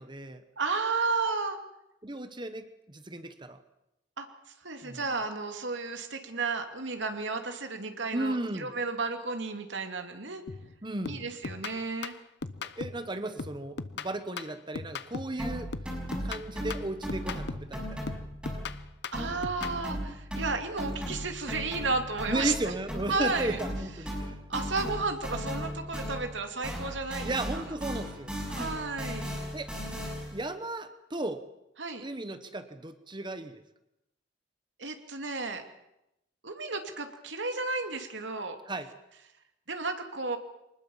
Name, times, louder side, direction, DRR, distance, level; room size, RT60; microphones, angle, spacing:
voice 1, 0.0-0.4 2.0-3.6 4.8-5.1 8.1-8.7 10.8-11.2 12.8-15.7 16.2-18.0 22.3-24.4 27.2-28.3 29.5-29.7 30.3-31.4 32.0-33.6 38.7-38.9, right 2 dB, 25° right, 10 dB, 1.2 m, -35 dB
voice 2, 0.6-1.6 4.2-4.3 4.6-10.4 11.1-12.1 19.1-22.7 23.1-23.6 24.5-27.6 28.5-29.4 31.8-32.1 34.8-35.6 36.4-38.6 39.7-40.4, right 3 dB, 75° right, 6 dB, 2.8 m, -33 dB
sound 1, 10.5-10.7 11.1-13.1 13.4-15.4 15.7-17.8 18.1-19.8, left 4 dB, 60° left, 0.9 m, -39 dB
sound 2, 15.4-18.9 19.1-26.4 26.6-30.4, equal, 5° right, 6.6 m, -37 dB
24.5 x 20.0 x 7.3 m, 0.86 s
head